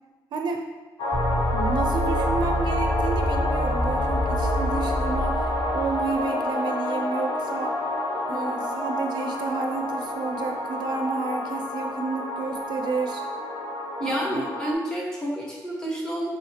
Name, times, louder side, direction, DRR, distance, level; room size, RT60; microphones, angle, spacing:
voice 1, 0.3-0.6 1.5-5.5 5.7-7.7 8.3-13.2 14.0-14.5, right 4 dB, 75° right, 4 dB, 0.4 m, -30 dB
sound 1, 1.0-14.7, left 1 dB, 65° left, 0.7 m, -29 dB
sound 2, 1.1-6.1, equal, 25° right, 0.8 m, -27 dB
voice 2, 8.3-8.7 14.0-16.3, equal, 10° left, -5 dB, 1.1 m, -30 dB
5.5 x 3.0 x 2.8 m, 1.2 s
wide cardioid pair, 150°, 8 cm